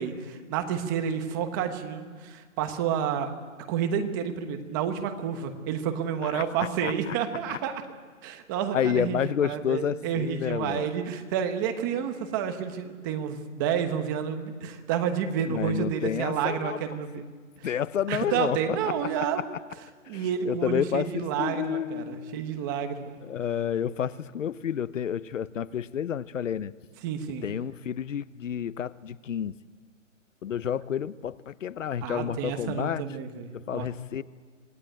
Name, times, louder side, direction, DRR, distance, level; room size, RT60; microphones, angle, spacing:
voice 1, 0.0-3.3 3.7-7.8 8.2-17.3 17.6-17.7 18.1-19.4 20.1-23.1 27.0-27.5 32.0-33.9, right 8 dB, 15° right, 7 dB, 1.2 m, -30 dB
voice 2, 6.8-7.1 7.5-7.6 8.7-10.9 15.5-16.8 17.6-18.9 20.1-21.1 21.4-22.4 23.2-26.7 27.4-29.5 30.4-33.0 33.5-34.2, left 9 dB, 70° left, 16 dB, 1.0 m, -30 dB
26.5 x 18.5 x 9.0 m, 1.5 s
hypercardioid pair, 170°, 39 cm